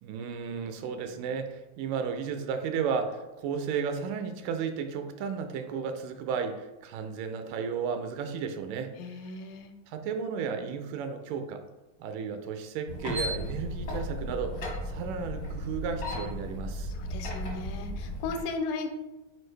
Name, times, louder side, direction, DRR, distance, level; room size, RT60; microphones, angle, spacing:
voice 1, 0.0-8.9 9.9-11.6 12.0-16.9, right 6 dB, 80° right, 7 dB, 2.1 m, -33 dB
voice 2, 9.0-9.7 16.9-18.9, left 3 dB, 85° left, 6 dB, 2.2 m, -36 dB
sound 1, 12.9-18.4, equal, 65° left, 0.8 m, -35 dB
6.4 x 4.6 x 3.2 m, 1.1 s
omnidirectional pair, 3.9 m